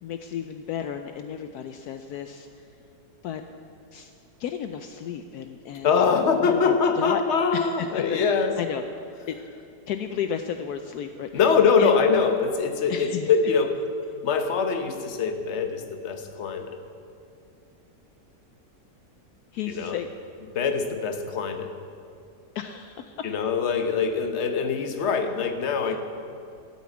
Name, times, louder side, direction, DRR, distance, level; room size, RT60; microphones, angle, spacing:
voice 1, 0.0-2.7 3.2-3.4 3.9-4.1 4.4-6.0 6.4-7.2 7.5-9.4 9.9-11.3 11.8-11.9 12.9-13.3 19.5-20.1 22.5-23.3 25.8-26.0, left 9 dB, 75° left, 7 dB, 1.1 m, -33 dB
voice 2, 5.8-8.5 11.3-13.8 14.2-16.8 19.7-20.0 20.5-21.7 23.2-26.0, left 5 dB, 45° left, 6 dB, 1.2 m, -23 dB
13.0 x 8.5 x 8.3 m, 2.6 s
omnidirectional pair, 1.8 m